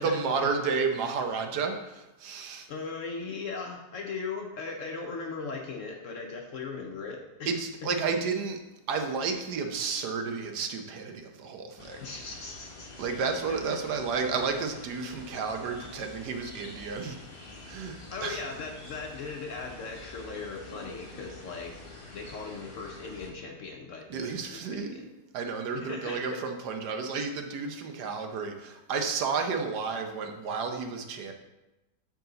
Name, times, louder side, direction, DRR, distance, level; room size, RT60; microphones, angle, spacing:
voice 1, 0.0-2.7 7.4-8.6 8.9-12.0 13.0-17.2 17.6-18.4 24.1-25.1 25.3-31.3, right 5 dB, 75° right, 5 dB, 1.3 m, -31 dB
voice 2, 2.7-7.6 12.0-13.1 13.5-13.8 18.1-21.8 22.1-25.1 25.7-26.4, left 4 dB, 60° left, 2 dB, 0.9 m, -38 dB
sound 1, 11.8-23.3, left 2 dB, 25° left, 0.8 m, -47 dB
7.7 x 4.7 x 3.9 m, 1.0 s
omnidirectional pair, 1.8 m